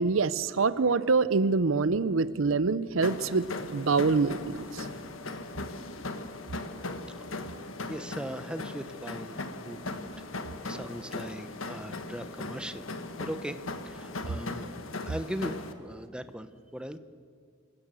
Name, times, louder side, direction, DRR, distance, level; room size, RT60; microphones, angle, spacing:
voice 1, 0.0-4.9, right 4 dB, 80° right, 16 dB, 0.6 m, -25 dB
sound 1, 3.0-15.7, left 2 dB, 80° left, 1.5 m, -38 dB
voice 2, 7.9-12.9 13.2-13.6 13.8-14.7 15.0-17.0, equal, 5° right, 11 dB, 0.9 m, -39 dB
26.5 x 16.5 x 7.6 m, 2.1 s
head